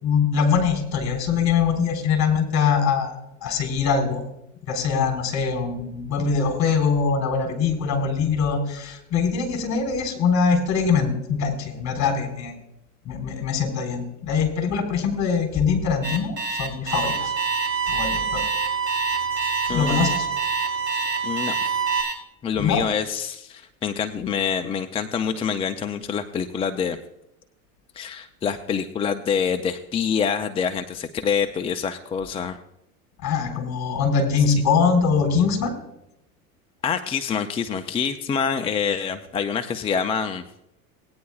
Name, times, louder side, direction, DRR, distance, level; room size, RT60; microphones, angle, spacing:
voice 1, 0.0-3.1 3.4-4.2 4.7-12.5 13.1-16.3 16.6-17.3 17.9-18.4 19.7-20.3 22.6-22.8 33.2-35.7, left 5 dB, 40° left, 4 dB, 3.5 m, -22 dB
Alarm, 16.0-22.1, right 2 dB, 25° right, 3.5 m, -29 dB
sound 1, 16.9-22.0, right 6 dB, 65° right, 2.7 m, -26 dB
voice 2, 19.7-20.1 21.2-21.8 22.4-27.0 27.9-32.6 36.8-40.4, left 7 dB, 15° left, 7 dB, 0.3 m, -26 dB
18.5 x 9.5 x 2.3 m, 0.84 s
hypercardioid pair, 105°, 45 cm